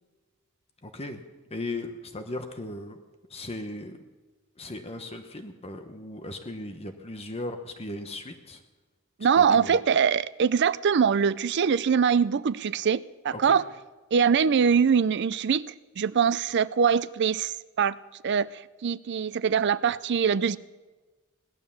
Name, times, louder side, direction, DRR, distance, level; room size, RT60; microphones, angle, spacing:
voice 1, 0.8-1.2 1.5-3.0 3.3-4.0 4.6-8.6 9.3-9.8 13.3-13.6, left 2 dB, 30° left, 7 dB, 1.0 m, -37 dB
voice 2, 9.2-13.6 14.1-18.0 18.2-18.5 18.8-20.6, right 6 dB, 55° right, 17 dB, 0.4 m, -23 dB
17.5 x 11.5 x 7.1 m, 1.3 s
head